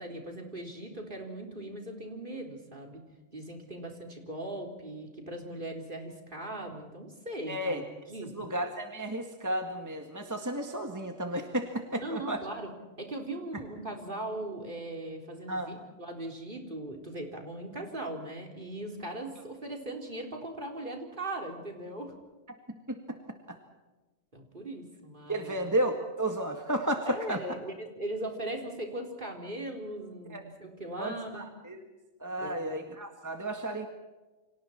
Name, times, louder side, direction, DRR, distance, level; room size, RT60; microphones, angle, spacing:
voice 1, 0.0-3.0 3.3-7.8 8.1-8.5 12.0-12.7 13.0-22.1 24.3-25.6 27.1-31.4 32.4-32.6, right 1 dB, 45° right, 2 dB, 4.0 m, -39 dB
voice 2, 7.5-7.8 8.3-12.4 15.5-15.7 22.7-23.6 25.3-27.4 30.3-30.4 31.0-31.8 32.2-33.9, right 1 dB, 15° right, 4 dB, 1.8 m, -33 dB
29.5 x 25.5 x 4.4 m, 1.2 s
omnidirectional pair, 1.3 m